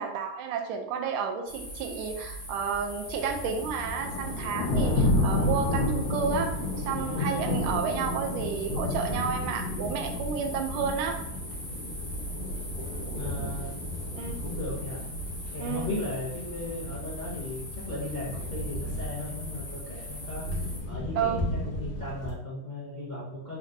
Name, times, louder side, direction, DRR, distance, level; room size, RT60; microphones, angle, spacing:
voice 1, 0.0-11.2 13.3-13.5 14.1-14.4 15.6-15.9 21.2-21.4, right 6 dB, 80° right, 4 dB, 1.4 m, -31 dB
sound 1, 1.5-20.8, equal, 20° left, 0.9 m, -41 dB
Thunder, 3.1-22.3, left 2 dB, 60° left, 1.3 m, -32 dB
voice 2, 13.1-13.8 14.4-15.0 15.5-23.6, left 2 dB, 90° left, -8 dB, 0.4 m, -36 dB
4.0 x 3.3 x 2.6 m, 0.79 s
omnidirectional pair, 2.4 m